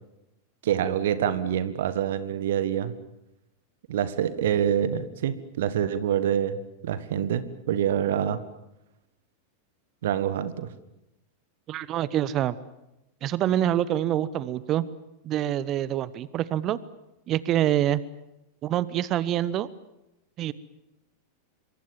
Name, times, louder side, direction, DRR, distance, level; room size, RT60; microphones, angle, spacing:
voice 1, 0.6-2.9 3.9-6.6 6.8-8.4 10.0-10.7, right 9 dB, 55° right, 14 dB, 1.5 m, -26 dB
voice 2, 11.7-12.6 13.2-14.8 15.2-16.8 17.3-18.0 18.6-19.7 20.4-20.5, right 12 dB, 35° right, 19 dB, 1.0 m, -26 dB
26.5 x 24.0 x 7.4 m, 0.91 s
figure-of-eight pair, 90°, 0 cm